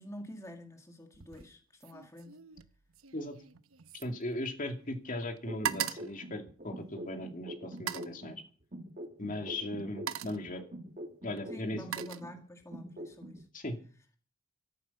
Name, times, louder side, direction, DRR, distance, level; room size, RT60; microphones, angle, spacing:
voice 1, 0.0-2.4 11.5-13.5, equal, 15° left, 4 dB, 1.9 m, -48 dB
sound 1, 1.1-1.5 1.8-4.9 5.2-7.1 7.7-8.2 9.2-9.4 9.8-10.5 11.4-12.8 13.1-13.5, right 9 dB, 75° right, 0.9 m, -40 dB
voice 2, 3.9-8.4 9.2-10.6 11.2-11.8 13.5-13.8, left 1 dB, 40° left, 5 dB, 2.5 m, -38 dB
sound 2, 5.5-8.4 8.7-12.4 12.7-13.4, right 1 dB, 35° right, 2.1 m, -44 dB
15.0 x 14.0 x 5.6 m, 0.40 s
head